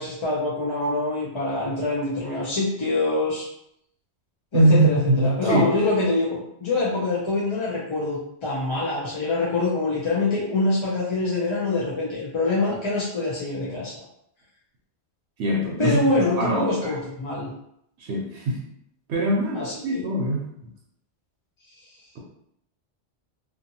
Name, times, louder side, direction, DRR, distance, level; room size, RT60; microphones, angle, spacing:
voice 1, 0.0-3.5 4.5-14.0 15.8-17.5 19.5-20.1, left 2 dB, 40° left, -6 dB, 0.4 m, -25 dB
voice 2, 4.5-5.6 15.4-16.1 16.4-16.9 18.0-18.6 19.1-20.5, right 1 dB, 80° right, -2 dB, 0.8 m, -22 dB
2.6 x 2.4 x 2.7 m, 0.74 s
omnidirectional pair, 1.1 m